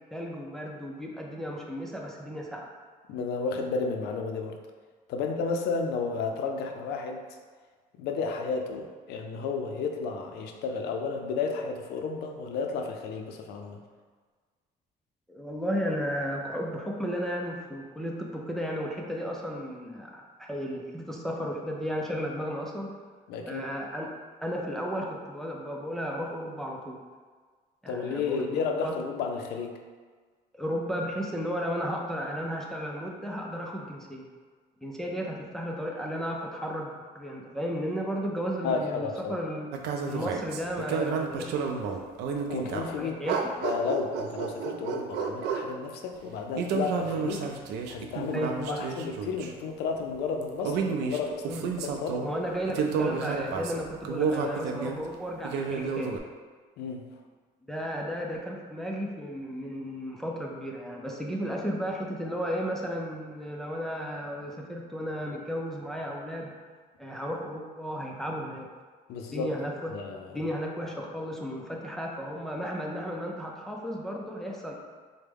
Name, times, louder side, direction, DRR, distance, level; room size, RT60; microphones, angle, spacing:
voice 1, 0.1-2.7 15.3-22.9 23.5-24.1 24.4-27.0 27.8-28.9 30.6-34.3 34.8-39.7 40.1-41.9 42.9-43.5 48.3-48.8 51.5-51.7 52.2-56.2 57.7-66.5 67.0-68.7 69.3-70.0 70.3-74.7, equal, ahead, -1 dB, 0.4 m, -34 dB
voice 2, 3.1-4.6 5.1-7.2 8.0-13.8 23.3-23.6 27.9-29.8 38.6-39.4 42.5-43.1 43.6-47.5 47.9-48.5 48.8-52.3 56.8-57.1 69.1-69.5 69.9-70.4, left 4 dB, 75° left, 4 dB, 0.4 m, -32 dB
sound 1, 39.7-43.0 43.3-45.7 46.6-49.5 50.4-52.3 52.7-55.0 55.4-56.2, right 5 dB, 85° right, 0.4 m, -31 dB
4.4 x 2.1 x 3.4 m, 1.5 s
cardioid pair, 110°, 17 cm